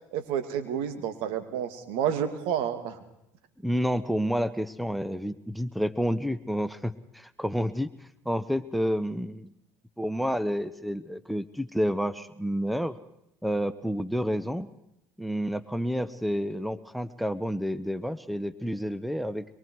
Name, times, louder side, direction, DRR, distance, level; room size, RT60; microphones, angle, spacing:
voice 1, 0.1-3.0, right 9 dB, 70° right, 8 dB, 2.7 m, -30 dB
voice 2, 3.6-7.9 8.2-9.5 10.0-13.0 13.4-14.7 15.2-19.5, equal, ahead, 15 dB, 1.0 m, -29 dB
24.0 x 23.0 x 4.7 m, 0.84 s
hypercardioid pair, 75°, 10 cm